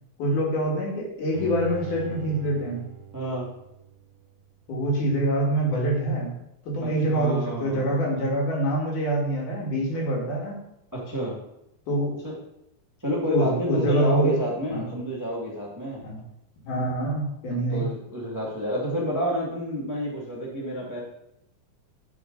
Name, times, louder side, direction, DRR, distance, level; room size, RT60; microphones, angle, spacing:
voice 1, 0.2-2.9 4.7-6.3 6.6-10.6 11.9-12.1 13.3-14.4 14.7-14.9 16.0-16.2 16.7-17.8, right 1 dB, 65° left, -3 dB, 3.4 m, -25 dB
Bowed string instrument, 1.3-4.5 4.9-5.0, right 9 dB, 85° right, 2.3 m, -41 dB
voice 2, 3.1-3.5 6.8-8.2 9.9-10.0 10.9-11.4 12.2-12.3 13.0-16.0 17.5-21.0, equal, 25° right, -5 dB, 0.4 m, -29 dB
11.0 x 4.7 x 3.9 m, 0.82 s
omnidirectional pair, 4.0 m